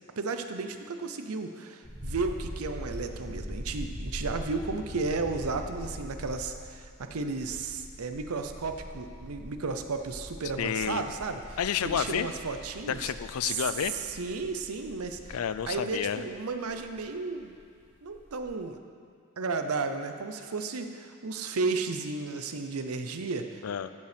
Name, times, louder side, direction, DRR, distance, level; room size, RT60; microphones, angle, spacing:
voice 1, 0.2-11.6 11.8-13.1 13.4-13.6 14.1-15.4 15.7-17.5 18.0-18.8 19.4-23.6, right 4 dB, 80° right, 7 dB, 0.7 m, -33 dB
sound 1, 1.8-17.6 17.9-18.4, equal, 10° right, 1.8 m, -42 dB
voice 2, 10.6-11.1 11.6-12.3 12.9-13.9 15.3-16.2 23.6-23.9, left 8 dB, 80° left, 12 dB, 0.4 m, -30 dB
14.5 x 5.5 x 5.1 m, 2.2 s
head